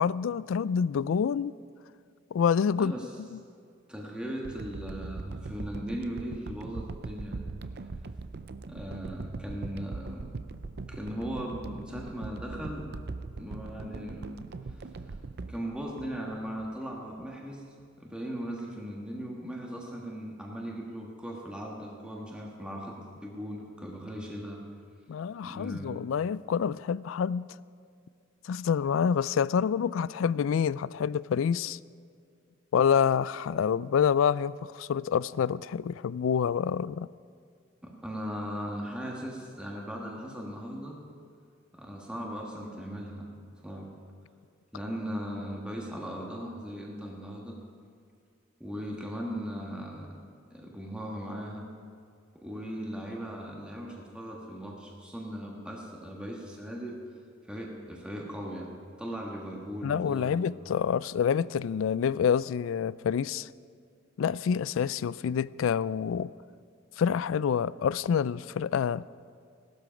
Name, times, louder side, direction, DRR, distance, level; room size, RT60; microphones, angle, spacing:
voice 1, 0.0-1.5 2.3-2.9 3.2-3.4 25.1-27.5 28.4-31.8 32.7-37.1 59.8-63.5 64.2-66.3 67.0-69.0, left 7 dB, 70° left, 0.3 m, -27 dB
voice 2, 2.8-3.1 3.9-7.4 8.7-10.3 10.9-13.0 13.4-14.7 15.0-15.1 15.5-17.6 18.0-23.0 23.2-24.6 25.4-25.9 37.8-41.0 41.7-43.9 44.7-47.6 48.6-50.1 50.5-51.7 52.4-57.0 57.5-58.7 59.0-60.4, equal, 5° right, 1.5 m, -38 dB
sound 1, 4.4-16.7 17.2-17.3, right 3 dB, 55° right, 0.5 m, -41 dB
17.0 x 12.5 x 5.1 m
head